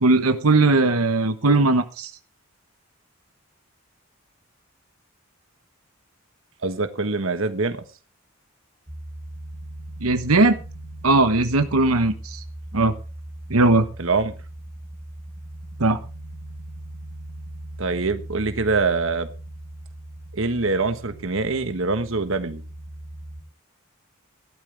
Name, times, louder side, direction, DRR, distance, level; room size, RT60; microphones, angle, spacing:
voice 1, 0.0-2.1 10.0-10.6 11.0-12.4 12.7-12.9 13.5-13.8 15.8-16.0, right 2 dB, 90° right, 1.2 m, -18 dB
voice 2, 6.6-7.8 14.0-14.3 17.8-19.3 20.3-22.6, right 3 dB, 65° right, 1.3 m, -24 dB
sound 1, 8.9-23.4, right 1 dB, 25° right, 1.3 m, -39 dB
15.5 x 12.5 x 3.4 m
head